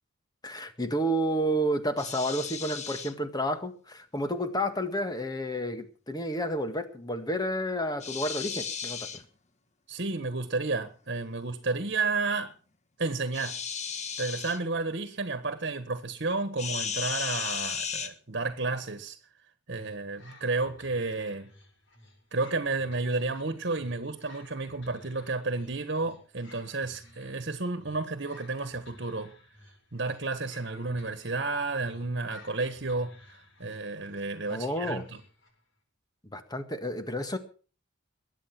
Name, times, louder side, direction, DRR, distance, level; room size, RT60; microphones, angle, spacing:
voice 1, 0.4-9.2 34.5-35.0 36.3-37.4, equal, 20° left, 1.8 m, -30 dB
sound 1, 2.0-3.1 8.0-9.2 13.3-14.6 16.6-18.1, left 6 dB, 35° left, 1.4 m, -35 dB
voice 2, 9.9-12.5 13.0-13.5 14.2-19.2 19.7-21.5 22.3-29.3 29.9-35.2, right 3 dB, 55° right, 1.6 m, -32 dB
sound 2, 19.7-35.6, left 2 dB, 65° left, 7.0 m, -56 dB
21.5 x 9.1 x 6.0 m
head